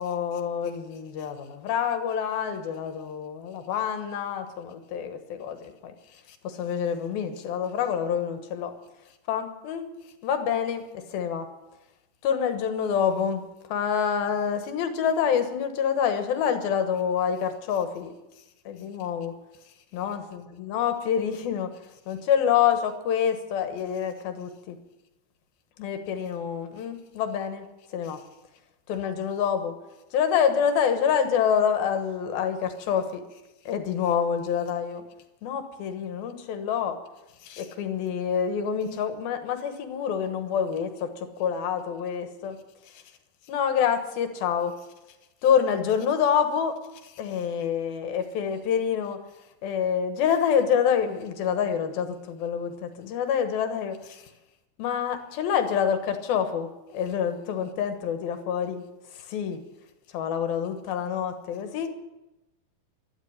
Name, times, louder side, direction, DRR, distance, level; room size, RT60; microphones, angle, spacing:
voice 1, 0.0-5.9 6.3-8.7 9.3-9.9 10.2-11.5 12.2-13.4 13.7-18.1 18.7-19.3 19.9-21.7 22.1-24.8 25.8-27.7 27.9-28.2 28.9-29.7 30.1-33.2 33.7-35.0 35.4-37.0 37.4-42.6 42.9-43.0 43.5-44.7 45.4-46.8 47.0-49.2 49.6-54.2 54.8-58.8 59.1-59.6 60.1-61.9, left 8 dB, 75° left, 7 dB, 3.2 m, -27 dB
13.0 x 12.0 x 8.8 m, 0.98 s
omnidirectional pair, 4.3 m